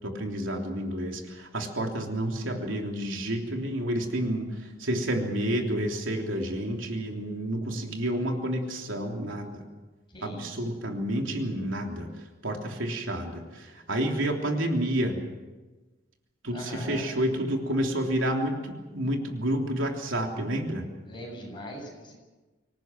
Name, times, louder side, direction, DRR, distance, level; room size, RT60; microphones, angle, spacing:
voice 1, 0.0-9.6 10.2-12.1 12.4-15.2 16.4-20.8, right 1 dB, 75° right, 2 dB, 3.3 m, -30 dB
voice 2, 10.1-10.7 16.5-17.1 21.1-22.2, equal, 25° left, -1 dB, 7.8 m, -41 dB
25.5 x 18.5 x 7.7 m, 1.2 s
head